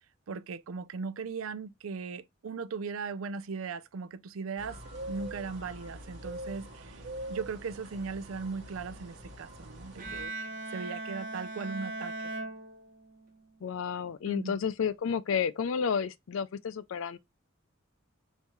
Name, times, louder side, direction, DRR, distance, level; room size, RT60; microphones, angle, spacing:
voice 1, 0.3-4.8 5.1-7.0 7.3-10.3 10.7-12.1 14.3-14.6, right 4 dB, 85° right, 0.5 m, -38 dB
sound 1, 4.6-10.3, right 1 dB, 60° right, 1.5 m, -44 dB
Bowed string instrument, 10.0-13.3, right 2 dB, 40° right, 1.0 m, -39 dB
voice 2, 13.6-17.2, left 6 dB, 70° left, 0.4 m, -31 dB
5.5 x 2.7 x 3.0 m
head